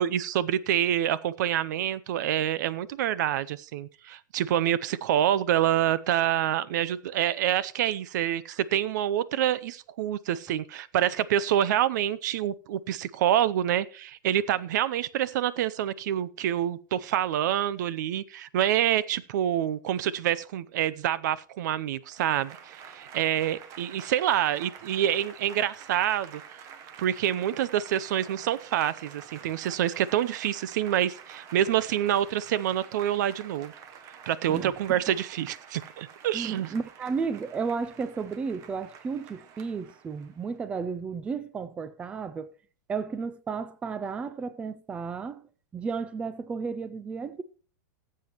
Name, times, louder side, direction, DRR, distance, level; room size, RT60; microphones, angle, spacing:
voice 1, 0.0-26.4 27.0-33.7 34.3-36.8, right 11 dB, 65° right, 0.6 m, -27 dB
Applause / Crowd, 22.0-40.6, right 7 dB, 30° right, 1.0 m, -48 dB
voice 2, 36.3-42.5 42.9-47.4, right 5 dB, 10° right, 0.4 m, -33 dB
18.0 x 7.7 x 3.0 m
supercardioid pair, 160°, 11 cm